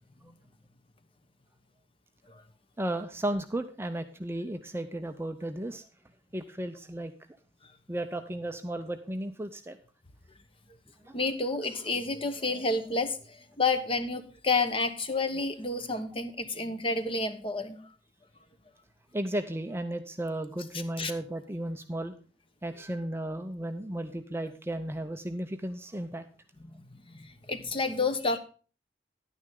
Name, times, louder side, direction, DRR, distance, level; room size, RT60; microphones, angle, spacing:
voice 1, 2.8-5.8 6.3-7.1 7.9-9.8 11.0-11.2 19.1-22.1 22.6-26.2, right 1 dB, 15° right, 8 dB, 0.5 m, -34 dB
voice 2, 11.1-17.8 21.0-21.1 26.9-28.4, left 3 dB, 30° left, 9 dB, 1.0 m, -30 dB
11.0 x 9.7 x 3.7 m, 0.37 s
head